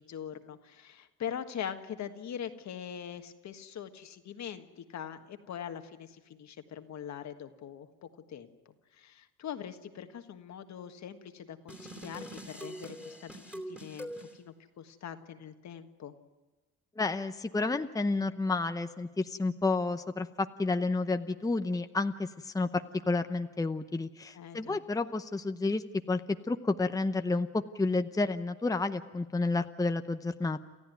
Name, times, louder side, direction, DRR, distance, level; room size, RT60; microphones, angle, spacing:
voice 1, 0.0-8.5 8.9-16.1 24.3-24.8, left 8 dB, 65° left, 8 dB, 1.6 m, -42 dB
sound 1, 11.7-14.3, right 1 dB, 5° right, 2.9 m, -43 dB
voice 2, 17.0-26.2 26.5-30.6, left 3 dB, 10° left, 8 dB, 0.8 m, -30 dB
28.5 x 14.0 x 9.3 m, 1.2 s
cardioid pair, 90°, 30 cm